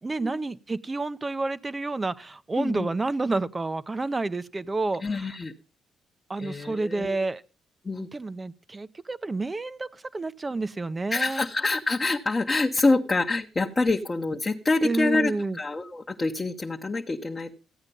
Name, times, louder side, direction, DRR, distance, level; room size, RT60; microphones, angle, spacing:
voice 1, 0.0-5.3 6.3-7.4 8.1-11.4 14.8-15.6, right 3 dB, 25° right, 0.7 m, -29 dB
voice 2, 2.6-2.9 5.0-5.5 6.4-7.2 7.8-8.1 11.1-15.3 15.6-17.5, left 3 dB, 25° left, 1.0 m, -26 dB
14.5 x 8.8 x 5.4 m
cardioid pair, 90°, 0 cm